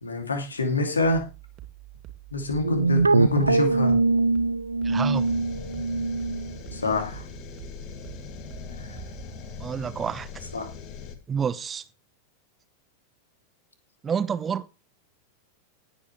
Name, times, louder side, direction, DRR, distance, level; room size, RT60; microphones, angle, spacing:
voice 1, 0.0-1.2 2.3-4.0 6.7-7.2 8.8-9.0 10.5-10.7, left 2 dB, 75° left, 2.7 m, -26 dB
sound 1, 1.0-9.2, right 14 dB, 35° right, 2.5 m, -46 dB
sound 2, 2.6-7.0, right 3 dB, 80° right, 0.6 m, -23 dB
voice 2, 4.8-5.4 9.6-10.3 11.3-11.8 14.0-14.7, right 7 dB, 20° right, 0.9 m, -29 dB
sound 3, 5.1-11.2, left 5 dB, 40° left, 2.3 m, -41 dB
18.0 x 8.6 x 3.3 m
figure-of-eight pair, 90°, 0 cm